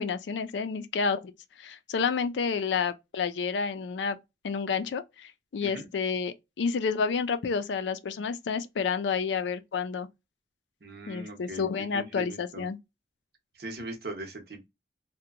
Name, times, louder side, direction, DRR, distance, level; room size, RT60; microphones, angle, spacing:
voice 1, 0.0-1.3 1.6-4.2 4.4-10.1 11.1-12.8, left 5 dB, 85° left, 0.4 m, -30 dB
voice 2, 10.8-12.6 13.5-14.7, right 2 dB, 60° right, 0.8 m, -40 dB
2.7 x 2.1 x 2.4 m
head